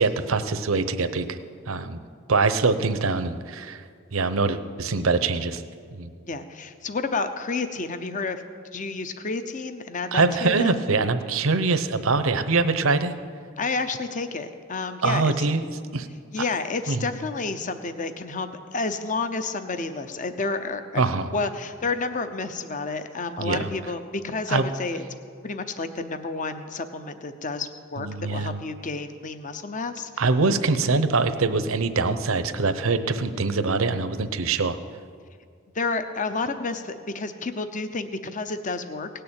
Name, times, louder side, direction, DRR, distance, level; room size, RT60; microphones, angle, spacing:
voice 1, 0.0-1.4 1.7-2.0 2.3-3.8 4.1-5.6 5.9-6.1 10.1-13.1 15.0-15.6 15.9-16.1 16.9-17.1 21.0-21.3 23.4-23.7 24.5-24.7 28.0-28.6 30.2-34.8, right 3 dB, 75° right, 11 dB, 0.8 m, -23 dB
voice 2, 6.2-8.4 8.7-10.8 13.6-15.5 16.3-25.0 25.4-30.1 35.7-39.1, left 3 dB, 40° left, 9 dB, 0.7 m, -30 dB
18.0 x 6.8 x 8.8 m, 2.2 s
head